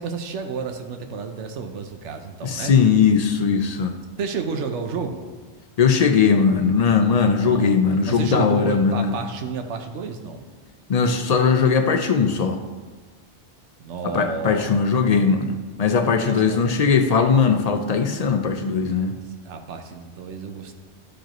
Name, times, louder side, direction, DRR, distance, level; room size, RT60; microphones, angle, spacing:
voice 1, 0.0-2.8 4.2-5.3 7.4-7.7 8.1-10.5 13.8-14.7 16.3-16.6 19.4-20.7, right 5 dB, 85° right, 5 dB, 1.0 m, -30 dB
voice 2, 2.4-3.9 5.8-9.1 10.9-12.6 14.1-19.1, left 5 dB, 50° left, 6 dB, 0.5 m, -19 dB
11.5 x 5.0 x 3.0 m, 1.4 s
omnidirectional pair, 1.2 m